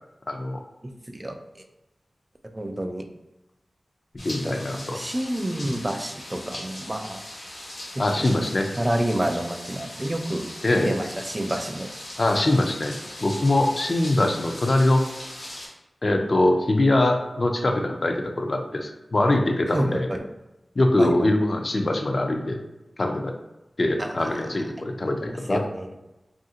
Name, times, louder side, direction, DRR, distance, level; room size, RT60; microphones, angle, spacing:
voice 1, 0.3-0.6 4.2-5.0 8.0-8.7 10.6-10.9 12.2-15.0 16.0-20.1 20.8-22.6 23.0-23.3 23.8-25.6, left 1 dB, 50° left, 4 dB, 0.4 m, -23 dB
voice 2, 0.8-1.4 2.5-3.0 4.5-7.2 8.0-8.3 8.8-10.5 10.8-11.9 19.7-20.3 21.0-21.1 24.0-24.3 25.2-25.9, right 1 dB, 25° right, 5 dB, 0.3 m, -29 dB
sound 1, 4.2-15.7, left 1 dB, 80° left, 1.0 m, -39 dB
2.7 x 2.5 x 2.7 m, 0.99 s
wide cardioid pair, 55°, 0 cm